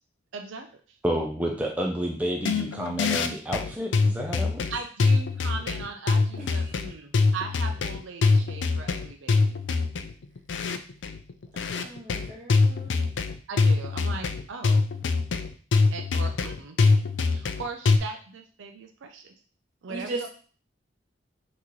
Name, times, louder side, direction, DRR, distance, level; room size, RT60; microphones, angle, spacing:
voice 1, 0.3-1.0 4.7-9.6 13.5-14.9 15.9-16.8 17.3-19.3 19.8-20.3, right 4 dB, 85° right, 5 dB, 0.5 m, -39 dB
voice 2, 1.0-4.6, equal, 10° right, 0 dB, 0.4 m, -29 dB
sound 1, 2.4-18.0, left 4 dB, 75° left, 0.4 m, -24 dB
voice 3, 11.6-12.9 19.9-20.3, right 2 dB, 45° right, -4 dB, 1.8 m, -37 dB
5.9 x 3.0 x 3.0 m, 0.41 s
head